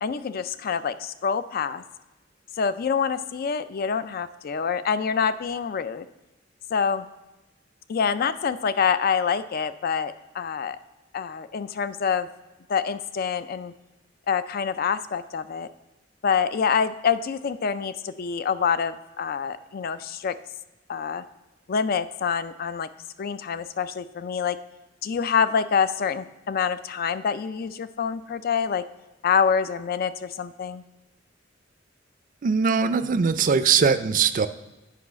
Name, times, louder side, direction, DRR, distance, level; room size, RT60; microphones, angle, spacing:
voice 1, 0.0-1.8 2.5-6.1 6.7-7.1 7.9-10.8 11.1-12.3 12.7-13.7 14.3-15.7 16.2-20.3 20.9-21.2 21.7-22.9 23.2-24.6 25.0-28.8 29.2-30.8, left 6 dB, 50° left, 13 dB, 0.4 m, -26 dB
voice 2, 32.4-34.5, right 6 dB, 45° right, 11 dB, 0.4 m, -21 dB
8.4 x 5.5 x 5.1 m, 1.1 s
head